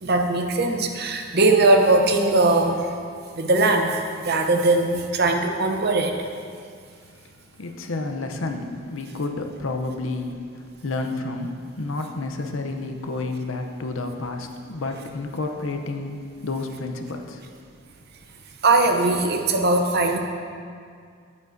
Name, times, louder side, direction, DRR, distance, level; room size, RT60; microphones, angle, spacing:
voice 1, 0.0-2.9 3.3-6.1 18.6-20.2, right 2 dB, 55° right, 4 dB, 0.7 m, -20 dB
voice 2, 7.6-17.4, left 2 dB, 85° left, 5 dB, 0.7 m, -30 dB
10.5 x 8.4 x 2.6 m, 2.2 s
head